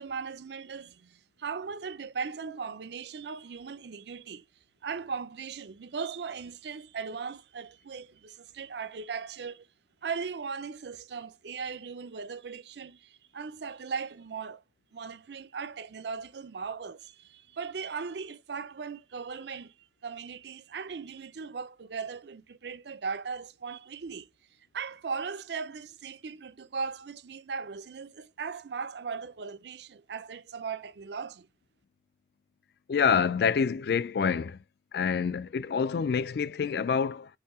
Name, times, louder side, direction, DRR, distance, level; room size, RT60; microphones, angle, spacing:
voice 1, 0.0-4.4 4.8-9.7 10.0-14.6 14.9-19.7 20.0-24.3 24.7-31.5, right 5 dB, 70° right, 0.5 m, -38 dB
voice 2, 32.9-34.6 34.9-37.3, left 6 dB, 60° left, 0.3 m, -27 dB
5.6 x 2.7 x 3.5 m
head